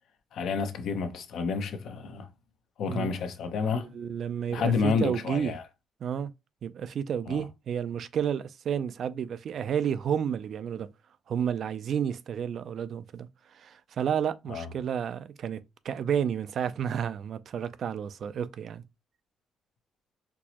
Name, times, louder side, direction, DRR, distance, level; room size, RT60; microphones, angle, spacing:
voice 1, 0.3-2.3 2.8-4.0 4.5-5.6 7.3-7.4 14.5-14.7, left 5 dB, 75° left, 0.6 m, -29 dB
voice 2, 3.7-5.5 6.0-6.3 6.6-10.9 11.3-13.3 13.6-18.8, right 8 dB, 60° right, 0.3 m, -31 dB
4.4 x 2.0 x 2.8 m
cardioid pair, 90°, 0 cm